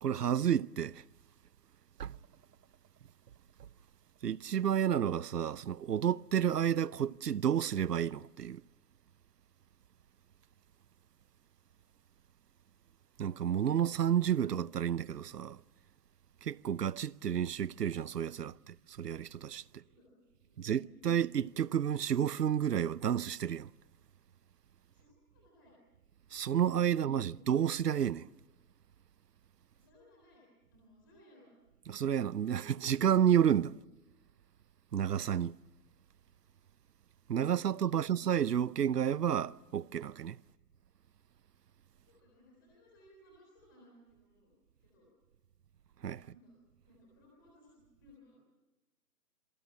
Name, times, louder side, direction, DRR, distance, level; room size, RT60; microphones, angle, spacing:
voice 1, 0.0-1.0 2.0-2.2 4.2-8.6 13.2-15.6 16.4-19.8 20.6-23.7 26.3-28.3 31.9-33.7 34.9-35.6 37.3-40.4 46.0-46.2, right 9 dB, 80° right, 0.7 m, -31 dB
voice 2, 19.6-21.2 24.9-25.7 29.7-31.5 37.7-38.1 42.1-44.5 44.8-45.1 46.2-46.5 46.9-48.4, left 1 dB, 15° left, 3.6 m, -62 dB
27.0 x 23.0 x 7.3 m
hypercardioid pair, 180°, 47 cm